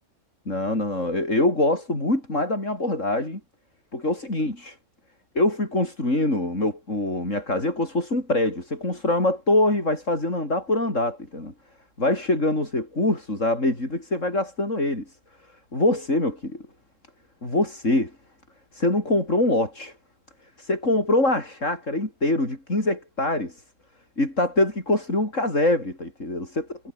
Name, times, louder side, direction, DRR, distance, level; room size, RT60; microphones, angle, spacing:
voice 1, 0.5-3.4 3.9-4.8 5.3-11.5 12.0-15.2 15.7-16.6 17.4-18.1 18.7-20.0 20.6-23.6 24.2-26.8, left 1 dB, 70° left, 7.4 m, -24 dB
omnidirectional pair, 1.4 m